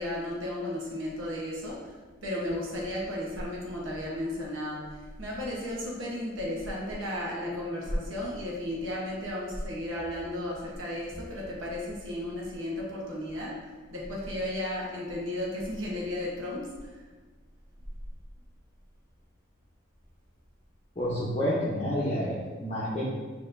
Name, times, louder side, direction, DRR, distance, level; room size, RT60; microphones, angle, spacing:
voice 1, 0.0-1.9 2.2-13.5 13.9-17.0, left 1 dB, 70° right, -4 dB, 0.9 m, -34 dB
voice 2, 21.0-23.0, equal, 30° left, -10 dB, 0.8 m, -29 dB
6.6 x 2.9 x 2.6 m, 1.3 s
head